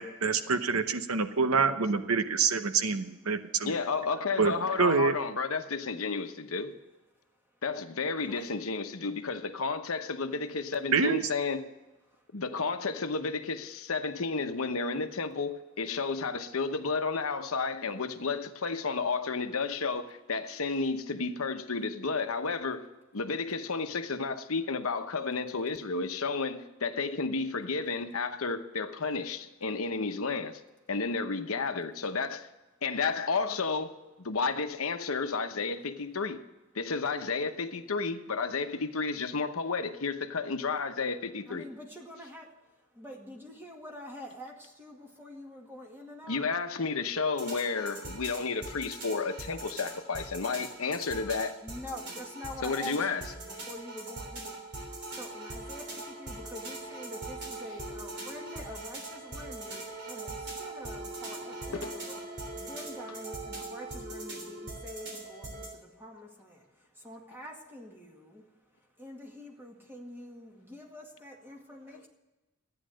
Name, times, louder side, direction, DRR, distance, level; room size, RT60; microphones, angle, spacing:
voice 1, 0.0-3.7 4.4-5.1 10.9-11.3, right 5 dB, 80° right, 0.9 m, -27 dB
voice 2, 3.6-6.7 7.6-11.6 12.3-22.9 23.1-30.6 30.9-32.5 32.8-36.4 36.7-41.6 46.3-51.5 52.6-53.2 61.7-61.9, left 4 dB, 75° left, 1.0 m, -32 dB
voice 3, 41.5-42.5 43.0-46.5 51.6-54.6 55.1-62.2 62.6-66.6 67.0-68.4 69.0-72.1, left 1 dB, 10° right, 2.1 m, -46 dB
sound 1, 47.4-65.7, right 2 dB, 55° right, 3.4 m, -41 dB
13.5 x 9.7 x 6.4 m
head